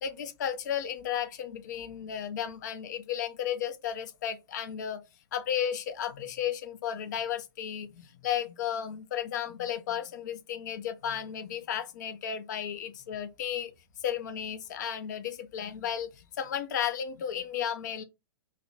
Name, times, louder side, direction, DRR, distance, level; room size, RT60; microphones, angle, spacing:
voice 1, 0.0-5.0 5.3-13.7 14.0-18.0, left 9 dB, 45° left, 0.4 m, -34 dB
2.4 x 2.0 x 2.6 m
figure-of-eight pair, 110°, 13 cm